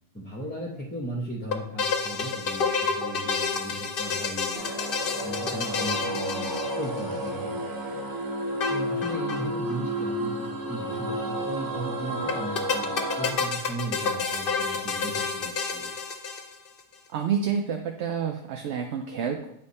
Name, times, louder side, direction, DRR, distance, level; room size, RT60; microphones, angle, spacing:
voice 1, 0.1-4.7 5.2-8.0 8.7-15.9, right 1 dB, 10° left, -3 dB, 0.8 m, -37 dB
sound 1, 1.5-7.3 8.6-9.5 9.7-9.8 10.0-10.1 12.3-16.8, left 5 dB, 55° left, 0.8 m, -29 dB
sound 2, 4.5-13.3, equal, 25° right, 0.5 m, -31 dB
voice 2, 17.1-19.5, right 7 dB, 75° right, 4 dB, 0.8 m, -28 dB
8.2 x 3.3 x 4.2 m, 0.78 s
omnidirectional pair, 1.2 m